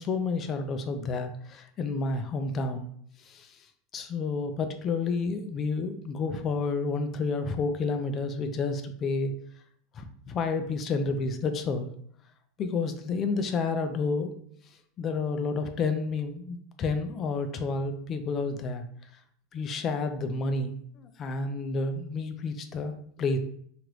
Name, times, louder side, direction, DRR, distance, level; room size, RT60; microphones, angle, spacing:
voice 1, 0.0-2.9 3.3-3.6 3.9-9.3 9.9-11.9 12.6-14.3 15.0-18.9 19.5-23.4, left 4 dB, 35° left, 7 dB, 0.4 m, -30 dB
3.1 x 2.5 x 2.9 m, 0.64 s
supercardioid pair, 130°, 0 cm